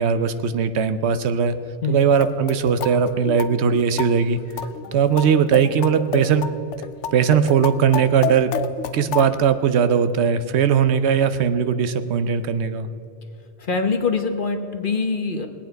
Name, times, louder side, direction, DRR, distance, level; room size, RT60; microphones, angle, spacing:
voice 1, 0.0-1.6 1.9-4.4 4.9-6.5 7.1-8.5 8.9-12.9, right 7 dB, 70° right, 11 dB, 0.9 m, -19 dB
sound 1, 2.0-9.4, left 6 dB, 85° left, 1.0 m, -30 dB
voice 2, 13.6-15.5, left 4 dB, 50° left, 6 dB, 1.1 m, -23 dB
20.5 x 8.8 x 4.6 m, 2.7 s
omnidirectional pair, 1.2 m